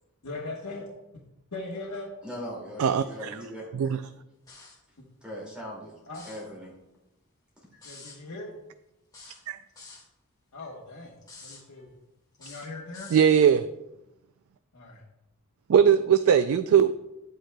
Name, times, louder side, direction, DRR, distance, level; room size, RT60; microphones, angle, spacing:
voice 1, 0.2-0.9 1.5-2.1 6.1-6.2 7.8-8.5 10.5-11.9 12.4-13.1 14.7-15.0, left 2 dB, 90° left, -3 dB, 1.2 m, -39 dB
voice 2, 2.2-3.9 5.2-5.9 6.3-6.7, equal, 5° right, -4 dB, 2.2 m, -39 dB
voice 3, 2.8-3.3 3.7-4.0 9.5-9.6 13.1-13.7 15.7-16.9, right 8 dB, 70° right, 11 dB, 0.3 m, -20 dB
sound 1, 4.5-4.8 6.0-6.5 7.8-8.2 9.1-10.1 11.2-11.6 12.3-13.3, left 3 dB, 15° left, 1.8 m, -48 dB
9.6 x 8.9 x 2.2 m, 0.93 s
head